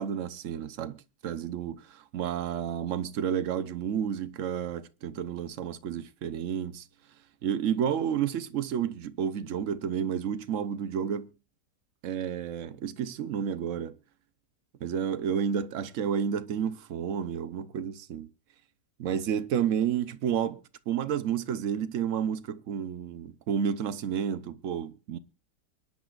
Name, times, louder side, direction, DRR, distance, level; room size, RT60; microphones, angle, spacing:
voice 1, 0.0-6.8 7.4-11.3 12.0-13.9 14.8-18.3 19.0-20.6 20.9-25.2, right 8 dB, 55° right, 1.0 m, -31 dB
24.0 x 11.0 x 2.5 m
omnidirectional pair, 1.8 m